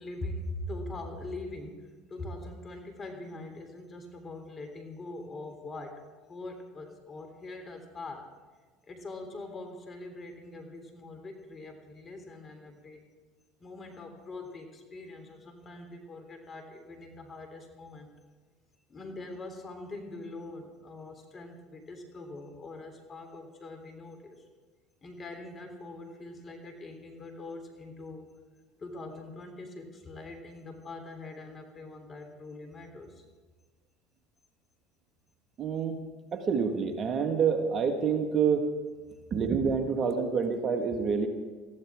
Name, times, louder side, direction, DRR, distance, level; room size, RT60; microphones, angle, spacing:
voice 1, 0.0-8.3 8.8-13.1 13.6-18.1 18.9-24.4 25.0-28.3 28.8-33.2, left 2 dB, 35° left, 5 dB, 3.5 m, -43 dB
voice 2, 35.6-36.0 36.3-38.7 39.3-41.3, right 6 dB, 45° right, 6 dB, 1.7 m, -27 dB
20.0 x 15.0 x 3.7 m, 1.4 s
hypercardioid pair, 85°, 0 cm